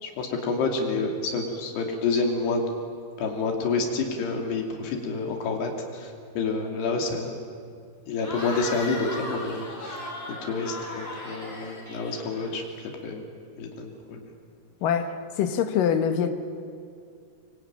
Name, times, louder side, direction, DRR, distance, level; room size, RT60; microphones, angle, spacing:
voice 1, 0.0-2.6 3.2-7.4 8.1-10.1 10.4-12.6 13.0-13.2 13.6-14.3, left 4 dB, 85° left, 2 dB, 4.8 m, -28 dB
Cheering / Crowd, 8.2-12.8, left 2 dB, 15° left, 4.1 m, -37 dB
voice 2, 14.8-16.3, left 8 dB, 65° left, 8 dB, 2.6 m, -24 dB
24.5 x 23.5 x 8.9 m, 2.3 s
omnidirectional pair, 4.7 m